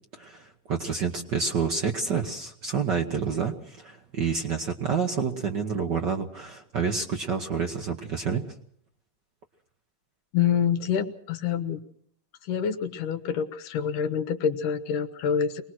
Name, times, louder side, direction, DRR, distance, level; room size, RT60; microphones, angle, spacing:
voice 1, 0.2-8.4, right 6 dB, 70° right, 2 dB, 1.0 m, -28 dB
voice 2, 10.3-11.8 12.5-15.6, left 7 dB, 75° left, 8 dB, 2.7 m, -26 dB
24.0 x 19.5 x 6.2 m, 0.65 s
omnidirectional pair, 3.7 m